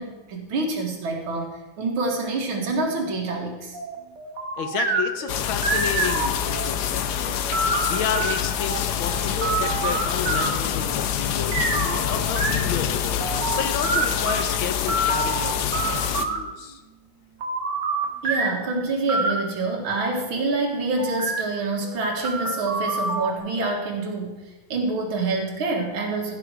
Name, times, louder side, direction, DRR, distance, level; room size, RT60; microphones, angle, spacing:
voice 1, 0.0-3.8 18.2-24.4 24.7-26.4, right 3 dB, 85° right, 1 dB, 2.4 m, -26 dB
sound 1, 3.7-6.7 7.1-10.7 11.5-14.5 14.9-16.4 17.4-18.7 19.1-19.3 20.3-20.6 21.0-21.4 21.8-23.4, right 3 dB, 60° right, 2.0 m, -27 dB
voice 2, 4.6-13.3 13.6-16.8, left 7 dB, 85° left, 9 dB, 1.8 m, -31 dB
sound 2, 5.3-16.3, left 9 dB, 65° left, 1.1 m, -26 dB
15.0 x 6.1 x 4.8 m, 1.1 s
omnidirectional pair, 2.2 m